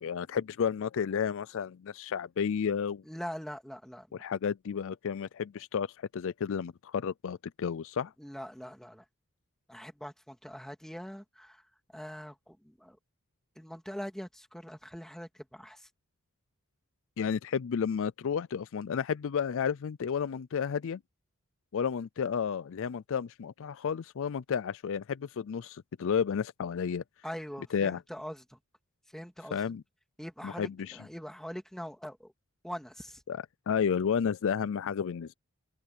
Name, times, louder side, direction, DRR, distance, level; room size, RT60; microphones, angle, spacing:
voice 1, 0.0-3.0 4.2-8.1 17.2-21.0 21.7-27.0 27.7-28.0 29.5-29.8 30.4-31.0 33.3-35.3, left 7 dB, 60° left, 0.4 m, -32 dB
voice 2, 3.1-4.2 8.2-9.0 9.7-11.6 11.9-13.0 13.6-15.9 27.2-28.6 29.1-29.6 30.2-32.3 32.6-33.2, equal, ahead, 2.0 m, -43 dB
open air
head